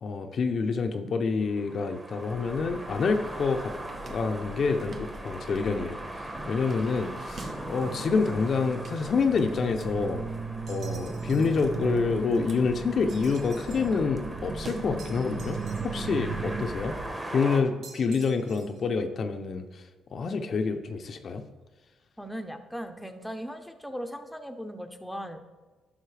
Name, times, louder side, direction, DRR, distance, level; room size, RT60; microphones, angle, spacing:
voice 1, 0.0-3.7 4.1-6.0 6.5-10.2 10.7-15.6 15.8-17.0 17.3-19.8 20.1-21.4, left 4 dB, 50° left, 6 dB, 0.6 m, -27 dB
sound 1, 1.4-17.6, right 1 dB, 15° right, 1.1 m, -40 dB
sound 2, 2.3-17.1, right 4 dB, 50° right, 0.9 m, -38 dB
sound 3, 10.7-11.6 13.1-14.0 15.0-16.2 17.8-18.8, right 5 dB, 70° right, 1.2 m, -50 dB
voice 2, 22.2-25.4, equal, ahead, 6 dB, 0.7 m, -38 dB
11.5 x 5.5 x 3.3 m, 1.3 s
cardioid pair, 90°, 0 cm